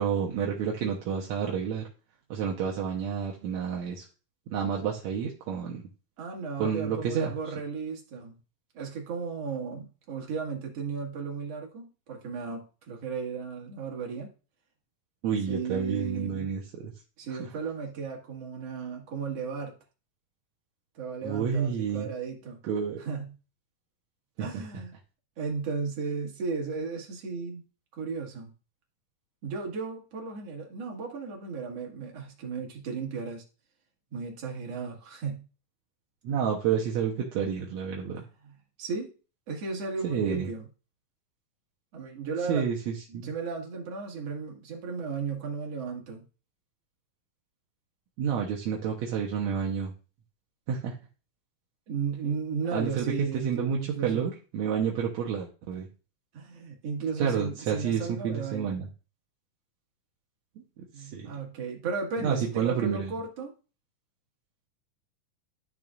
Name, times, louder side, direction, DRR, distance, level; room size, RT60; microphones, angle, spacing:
voice 1, 0.0-1.9 2.3-4.1 4.5-5.8 6.6-7.3 15.2-16.9 17.3-17.4 21.2-22.1 22.6-23.0 24.5-24.6 36.2-38.2 40.0-40.5 42.5-43.3 48.2-49.9 50.7-51.0 52.7-55.9 57.2-58.9 61.0-61.3 62.2-63.1, right 7 dB, 65° right, -1 dB, 2.0 m, -29 dB
voice 2, 6.2-8.4 8.7-14.3 15.5-16.5 17.2-19.7 20.9-22.6 23.0-23.3 24.4-25.0 25.4-27.6 27.9-28.5 29.4-33.4 34.1-35.4 38.2-39.1 39.5-40.6 41.9-42.7 43.1-46.2 51.9-54.3 56.3-58.8 60.9-63.5, right 5 dB, 50° right, 0 dB, 2.7 m, -35 dB
12.0 x 6.5 x 2.5 m, 0.34 s
omnidirectional pair, 3.9 m